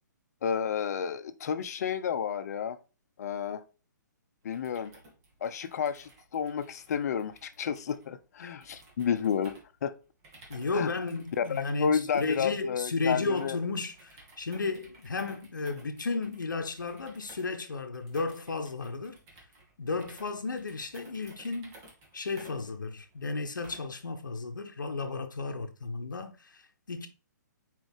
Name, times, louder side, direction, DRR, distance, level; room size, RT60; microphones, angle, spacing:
voice 1, 0.4-2.8 3.2-3.6 4.4-4.9 5.4-9.9 10.7-10.9 11.4-13.6, left 7 dB, 55° left, 0.7 m, -31 dB
sound 1, 4.4-24.0, right 2 dB, 30° right, 2.0 m, -56 dB
voice 2, 10.5-19.2 19.8-21.8 22.1-27.1, left 3 dB, 85° left, 0.9 m, -33 dB
6.1 x 4.6 x 3.5 m
hypercardioid pair, 135°, 10 cm